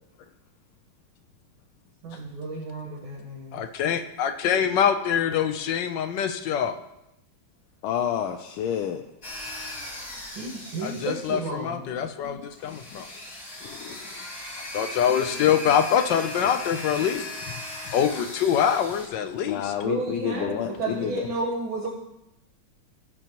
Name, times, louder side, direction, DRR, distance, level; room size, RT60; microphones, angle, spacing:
voice 1, 2.0-3.6 10.4-11.8 19.8-21.9, right 3 dB, 75° right, -3 dB, 2.1 m, -32 dB
voice 2, 3.5-6.8 10.8-13.1 13.6-14.1 14.7-17.3 17.8-19.7, left 8 dB, 70° left, 8 dB, 1.2 m, -25 dB
voice 3, 7.8-9.0 19.4-21.3, left 9 dB, 90° left, 5 dB, 1.5 m, -29 dB
sound 1, 9.2-11.6 12.5-19.1, left 1 dB, 40° left, 3.5 m, -38 dB
17.0 x 6.3 x 3.0 m, 0.89 s
omnidirectional pair, 2.3 m